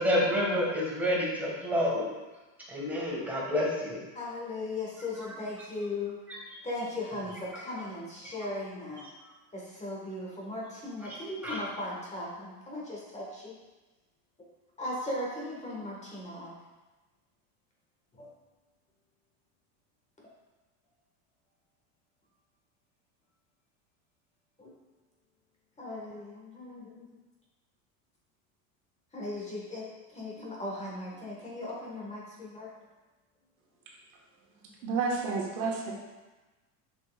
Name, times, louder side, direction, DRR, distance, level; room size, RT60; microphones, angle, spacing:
voice 1, 0.0-2.1 2.7-4.0 5.1-5.3 6.3-6.4 8.2-8.3 11.1-11.2 11.4-11.6, left 1 dB, 5° right, -5 dB, 1.8 m, -29 dB
voice 2, 4.1-6.2 6.6-9.0 9.5-13.5 14.8-16.5 18.2-18.3 24.6-24.7 25.8-26.8 29.1-29.8 30.1-32.7, left 2 dB, 15° left, -4 dB, 1.6 m, -37 dB
voice 3, 34.8-35.9, right 4 dB, 75° right, -2 dB, 1.6 m, -30 dB
7.0 x 5.8 x 2.4 m, 1.2 s
supercardioid pair, 135°, 44 cm